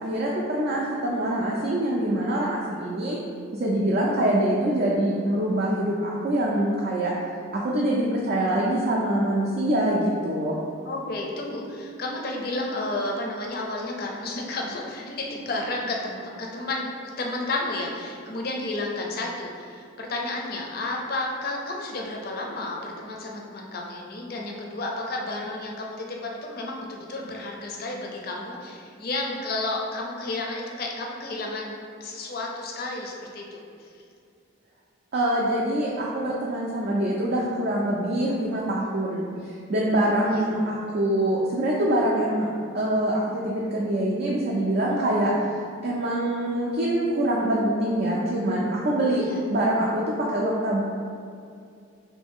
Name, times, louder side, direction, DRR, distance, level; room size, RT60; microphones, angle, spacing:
voice 1, 0.0-3.2 3.5-7.1 7.5-10.6 35.1-42.5 42.7-45.3 45.8-49.2 49.5-50.0 50.3-50.8, right 1 dB, 50° right, -4 dB, 0.4 m, -24 dB
voice 2, 10.9-16.9 17.2-31.7 32.0-33.6 40.0-40.5 49.0-49.4, left 2 dB, 45° left, -1 dB, 0.4 m, -32 dB
3.1 x 2.6 x 3.6 m, 2.4 s
head